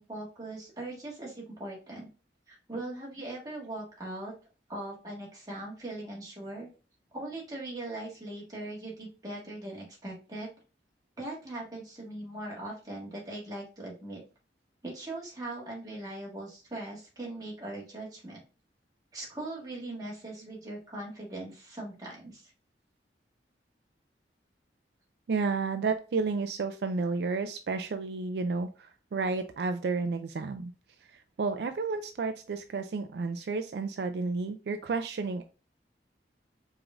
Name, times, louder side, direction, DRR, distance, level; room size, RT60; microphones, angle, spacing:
voice 1, 0.0-2.1 2.5-4.3 4.7-6.7 7.1-10.5 11.2-14.2 14.8-18.4 19.1-22.5, right 1 dB, 20° right, -4 dB, 1.7 m, -40 dB
voice 2, 25.3-30.7 31.1-35.4, right 4 dB, 65° right, 8 dB, 0.4 m, -31 dB
4.9 x 3.6 x 2.4 m, 0.34 s
head